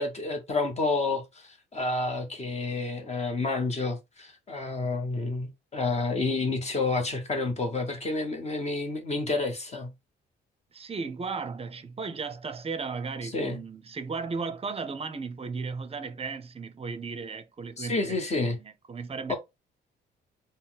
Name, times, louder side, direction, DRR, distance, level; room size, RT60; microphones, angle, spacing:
voice 1, 0.0-9.9 13.2-13.6 17.8-18.6 19.3-19.4, left 3 dB, 35° left, 1.1 m, -29 dB
voice 2, 10.7-19.3, right 4 dB, 30° right, 0.7 m, -35 dB
4.1 x 2.1 x 3.9 m
cardioid pair, 90°, 20 cm